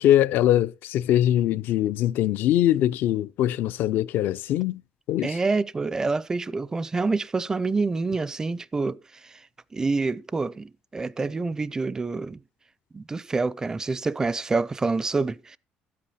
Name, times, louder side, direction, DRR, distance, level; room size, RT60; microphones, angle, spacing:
voice 1, 0.0-4.8 5.1-5.4, left 12 dB, 75° left, 0.5 m, -22 dB
voice 2, 5.2-9.4 9.7-12.4 12.9-15.6, right 3 dB, 20° right, 0.4 m, -27 dB
12.5 x 8.5 x 4.1 m
cardioid pair, 120°, 3 cm